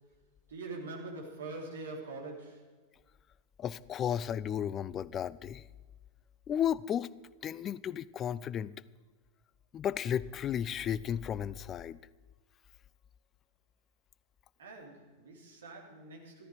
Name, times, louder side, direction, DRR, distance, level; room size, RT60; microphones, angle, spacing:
voice 1, 0.5-2.7 14.6-16.5, right 3 dB, 65° right, 0 dB, 3.2 m, -44 dB
voice 2, 3.6-5.6 6.5-7.1 7.4-8.7 9.7-12.0, left 9 dB, 30° left, 19 dB, 0.4 m, -33 dB
14.0 x 13.5 x 5.0 m, 1.3 s
figure-of-eight pair, 90°, 0 cm